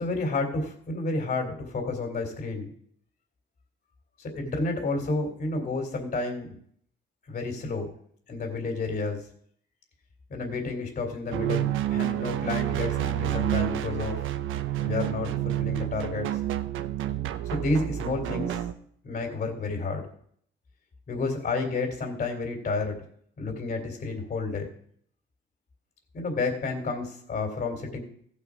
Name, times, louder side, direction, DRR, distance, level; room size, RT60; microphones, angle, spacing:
voice 1, 0.0-2.7 4.2-6.6 7.3-7.9 8.3-9.3 10.3-14.2 14.8-16.4 17.5-18.6 19.0-20.1 21.1-23.0 23.4-24.7 26.1-28.0, left 3 dB, 50° left, 2 dB, 2.9 m, -30 dB
sound 1, 11.3-18.7, right 13 dB, 85° right, 0.7 m, -29 dB
15.5 x 5.6 x 4.8 m, 0.64 s
cardioid pair, 90°, 20 cm